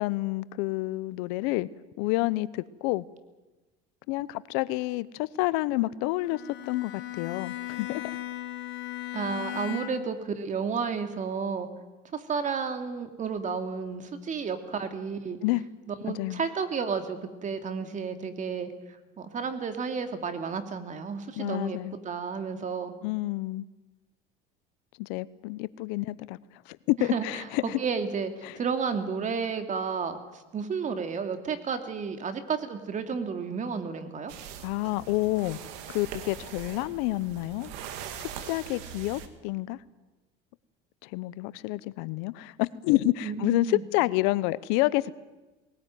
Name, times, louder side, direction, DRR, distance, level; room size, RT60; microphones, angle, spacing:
voice 1, 0.0-1.7 2.0-3.0 4.1-8.0 15.4-15.6 16.1-16.5 21.4-21.9 23.0-23.6 25.0-26.4 26.7-27.8 28.4-28.6 34.6-35.6 35.9-37.7 38.2-39.8 41.0-45.1, left 19 dB, 80° left, 18 dB, 0.8 m, -29 dB
Bowed string instrument, 6.2-10.2, left 14 dB, 60° left, 2.9 m, -37 dB
voice 2, 9.1-11.7 12.1-15.4 15.9-18.7 19.2-21.8 22.0-23.0 27.0-34.3 43.2-43.8, right 5 dB, 40° right, 7 dB, 2.6 m, -32 dB
sound 1, 34.3-39.3, right 8 dB, 80° right, 2.2 m, -42 dB
20.0 x 18.5 x 9.3 m, 1.1 s
supercardioid pair, 100°, 20 cm